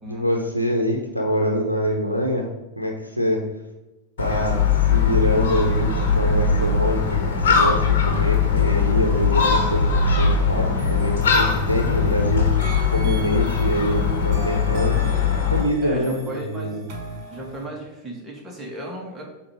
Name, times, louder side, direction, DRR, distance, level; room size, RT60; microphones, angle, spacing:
voice 1, 0.0-2.5 2.8-3.4 4.2-15.0 15.5-16.8, equal, 85° right, 1 dB, 0.8 m, -25 dB
Gull seagull, 4.2-15.6, left 5 dB, 60° left, 1.4 m, -20 dB
sound 1, 10.8-12.2 12.6-17.7, right 3 dB, 40° right, 1.5 m, -41 dB
voice 2, 15.8-16.8 17.3-19.2, right 1 dB, 15° right, -1 dB, 1.8 m, -35 dB
8.5 x 2.9 x 4.8 m, 1.0 s
figure-of-eight pair, 90°, 0 cm